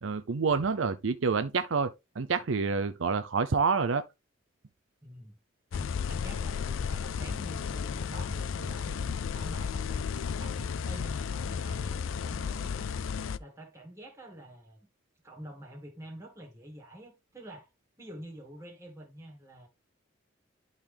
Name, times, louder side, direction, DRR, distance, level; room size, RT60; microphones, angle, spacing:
voice 1, 0.0-4.0, right 5 dB, 75° right, 0.6 m, -28 dB
voice 2, 5.0-5.4 5.7-9.0 9.3-12.9 13.4-14.8 15.2-17.7 18.0-19.7, right 1 dB, 15° right, 2.4 m, -47 dB
sound 1, 5.7-13.4, left 6 dB, 80° left, 0.4 m, -33 dB
11.5 x 4.0 x 3.4 m
head